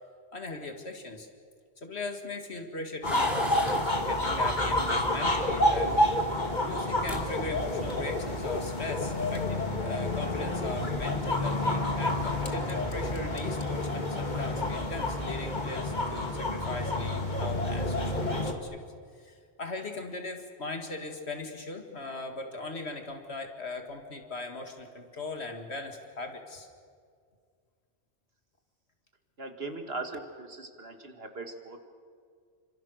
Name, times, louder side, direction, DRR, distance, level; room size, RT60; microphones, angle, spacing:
voice 1, 0.3-1.3 1.8-6.1 6.6-18.7 19.2-26.7, left 3 dB, 90° left, 4 dB, 2.7 m, -39 dB
sound 1, 3.0-18.5, left 1 dB, 45° left, 2.2 m, -29 dB
sound 2, 3.1-3.9 5.2-5.9 6.8-6.9 7.0-7.2 7.6-8.0, equal, ahead, 4.5 m, -38 dB
voice 2, 29.4-31.9, right 3 dB, 70° right, 5 dB, 2.4 m, -39 dB
29.0 x 25.5 x 6.6 m, 2.1 s
omnidirectional pair, 1.1 m